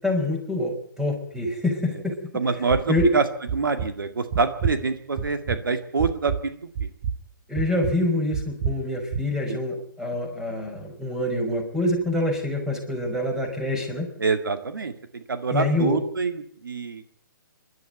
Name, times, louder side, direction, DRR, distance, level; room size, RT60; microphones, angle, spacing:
voice 1, 0.0-2.2 2.9-3.1 7.5-14.1 15.5-16.0, left 1 dB, 5° right, 3 dB, 5.3 m, -26 dB
voice 2, 2.3-3.3 3.5-6.9 9.5-9.6 14.2-17.0, right 4 dB, 80° right, 8 dB, 2.0 m, -26 dB
sound 1, 2.7-3.2 3.5-3.9 4.3-4.8 5.2-5.6 6.0-6.4 6.8-7.2 7.6-7.9 8.3-8.8 9.1-9.2, right 7 dB, 40° right, 1.6 m, -27 dB
25.0 x 12.5 x 9.3 m, 0.63 s
hypercardioid pair, 140°, 11 cm